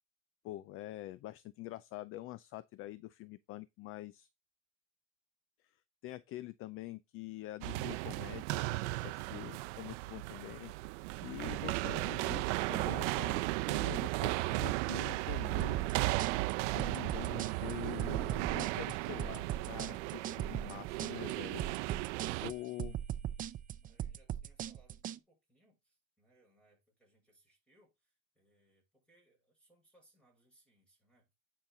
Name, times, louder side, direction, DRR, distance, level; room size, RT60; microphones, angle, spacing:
voice 1, 0.4-4.3 6.0-10.7 11.2-15.8 16.6-21.7 22.4-22.9, left 16 dB, 40° left, 0.4 m, -46 dB
sound 1, 7.6-22.5, right 20 dB, 85° right, 0.6 m, -35 dB
sound 2, 15.6-25.2, right 10 dB, 25° right, 0.5 m, -39 dB
voice 2, 23.8-31.3, right 1 dB, 5° left, 6.6 m, -70 dB
9.7 x 5.8 x 3.8 m
cardioid pair, 155°, 35 cm